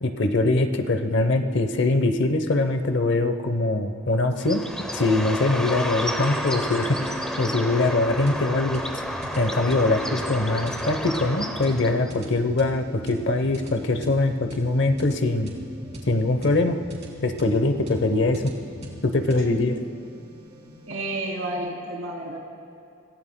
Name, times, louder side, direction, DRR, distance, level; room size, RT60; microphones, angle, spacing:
voice 1, 0.0-4.7 4.9-7.0 7.4-9.0 9.4-15.5 16.1-16.8 17.2-18.5 19.0-19.7, left 2 dB, 55° left, 8 dB, 0.8 m, -22 dB
Bird, 4.4-12.1, equal, 5° left, 0.8 m, -31 dB
sound 1, 6.2-21.6, equal, 35° right, 2.7 m, -40 dB
voice 2, 20.9-22.4, right 1 dB, 75° right, -2 dB, 3.0 m, -31 dB
26.5 x 16.5 x 2.2 m, 2.6 s
head